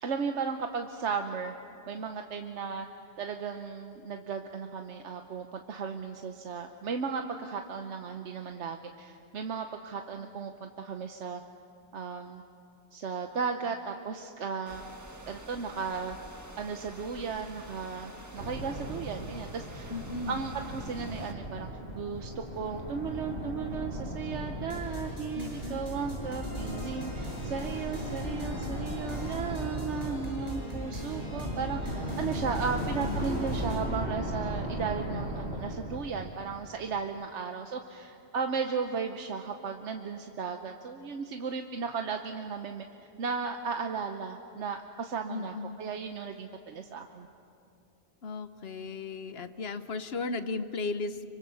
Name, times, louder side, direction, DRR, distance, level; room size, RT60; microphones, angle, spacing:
voice 1, 0.0-1.5 1.9-2.9 3.2-11.4 11.9-12.4 12.9-14.8 15.3-16.2 16.6-19.9 20.3-21.7 21.9-42.9 43.2-47.3, right 5 dB, 90° right, 5 dB, 1.2 m, -35 dB
sound 1, 14.6-21.3, right 1 dB, 15° right, 1.4 m, -48 dB
sound 2, 18.4-36.8, equal, 65° right, 3.2 m, -37 dB
voice 2, 19.9-20.4 25.3-26.1 32.8-33.3 45.3-45.8 48.2-51.2, left 3 dB, 65° left, 11 dB, 1.1 m, -36 dB
sound 3, 24.7-33.9, equal, 35° left, 7.4 m, -41 dB
26.0 x 24.5 x 7.0 m, 2.6 s
omnidirectional pair, 1.2 m